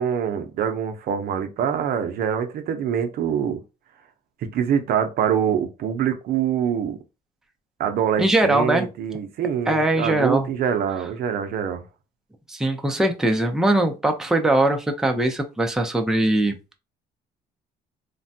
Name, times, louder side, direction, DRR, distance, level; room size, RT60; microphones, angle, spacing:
voice 1, 0.0-3.6 4.5-7.0 7.8-11.8, right 8 dB, 65° right, 0.5 m, -24 dB
voice 2, 8.2-8.9 9.7-10.5 12.5-16.8, right 1 dB, 5° right, 0.5 m, -21 dB
3.2 x 2.1 x 2.6 m
cardioid pair, 110°, 16 cm